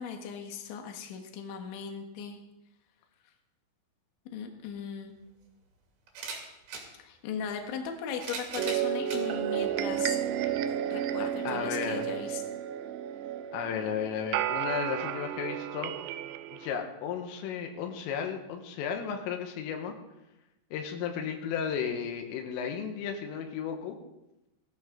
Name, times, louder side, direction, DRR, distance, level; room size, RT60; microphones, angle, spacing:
voice 1, 0.0-2.4 4.3-5.2 7.0-10.2 10.9-12.4, left 7 dB, 70° left, 3 dB, 3.7 m, -38 dB
sound 1, 4.7-4.8 6.1-6.9 7.9-9.3 10.0-10.1 11.4-11.5, right 4 dB, 65° right, 4.5 m, -39 dB
sound 2, 8.6-16.7, right 11 dB, 80° right, 2.8 m, -32 dB
voice 2, 11.4-12.1 13.5-16.1 16.5-20.0 20.7-24.0, left 7 dB, 90° left, 4 dB, 3.9 m, -34 dB
18.5 x 13.5 x 3.9 m, 0.94 s
omnidirectional pair, 5.7 m